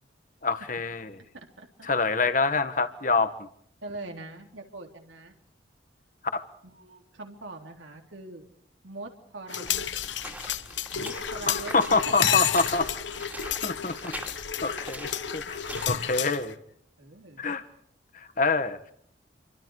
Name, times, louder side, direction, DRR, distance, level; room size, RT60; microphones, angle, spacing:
voice 1, 0.4-1.1 1.9-3.3 6.3-6.4 11.5-12.9 13.6-13.9 14.6-16.5 17.4-17.6 18.4-18.8, left 4 dB, 45° left, 10 dB, 1.6 m, -26 dB
voice 2, 1.3-1.9 3.8-5.3 6.6-8.4 8.8-9.9 10.9-11.8 12.1-12.2 12.4-12.6 13.9-14.0 17.0-17.4, right 2 dB, 85° right, 3 dB, 3.6 m, -43 dB
sound 1, 9.5-16.5, left 9 dB, 75° left, 1.2 m, -31 dB
sound 2, 9.6-16.0, right 1 dB, 10° right, 2.7 m, -42 dB
29.5 x 24.5 x 4.9 m, 0.66 s
head